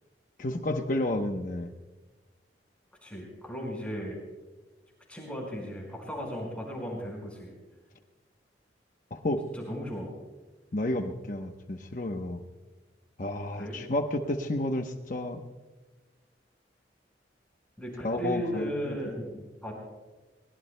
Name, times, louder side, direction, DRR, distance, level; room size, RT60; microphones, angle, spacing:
voice 1, 0.4-1.7 9.1-9.4 10.7-12.4 13.2-15.4 18.0-19.0, left 1 dB, 50° left, 4 dB, 0.9 m, -31 dB
voice 2, 3.0-4.2 5.1-7.5 9.5-10.1 13.6-13.8 17.8-19.7, equal, 5° left, -2 dB, 4.9 m, -36 dB
23.0 x 20.0 x 2.2 m, 1.3 s
head